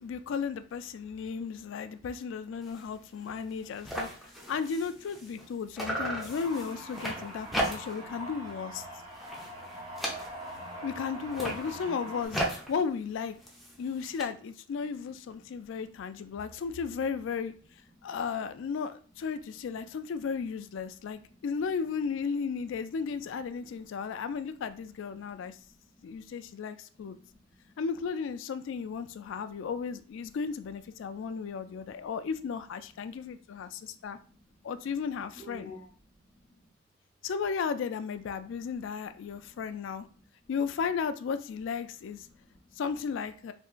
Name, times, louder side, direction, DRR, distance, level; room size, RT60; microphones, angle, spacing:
voice 1, 0.0-4.1 4.5-8.8 10.8-12.4 12.7-13.4 13.8-17.5 18.0-25.6 26.0-27.2 27.8-34.2 34.6-35.7 37.2-40.1 40.5-42.3 42.8-43.5, left 6 dB, 70° left, 11 dB, 0.3 m, -34 dB
sound 1, 2.6-2.9 3.2-3.3 3.5-5.5 5.8-8.1 8.5-8.8 9.1-10.7 11.2-14.2, right 1 dB, ahead, 0.5 m, -36 dB
sound 2, 6.3-12.3, equal, 25° right, 1.6 m, -43 dB
voice 2, 15.4-16.4 17.9-18.1 20.8-21.4 23.3-24.2 24.5-24.6 25.3-26.5 26.9-27.7 29.1-29.7 31.1-32.1 33.1-34.7 35.3-36.7 38.3-38.5 39.1-39.6 40.0-40.5 42.2-42.8, left 1 dB, 30° left, -3 dB, 0.9 m, -57 dB
3.5 x 2.8 x 2.4 m, 0.42 s
head